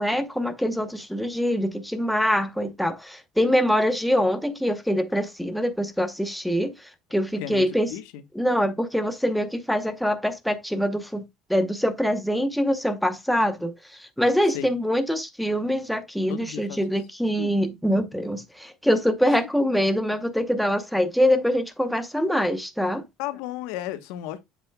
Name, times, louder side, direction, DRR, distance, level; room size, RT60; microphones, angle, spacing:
voice 1, 0.0-6.7 7.1-7.9 8.3-11.2 11.5-13.7 14.0-23.0, equal, ahead, 0.8 m, -24 dB
voice 2, 7.4-8.2 14.5-14.7 16.3-16.8 17.4-17.5 19.2-19.3 23.2-24.4, left 13 dB, 85° left, 1.0 m, -34 dB
7.7 x 6.8 x 2.2 m
cardioid pair, 140°, 0 cm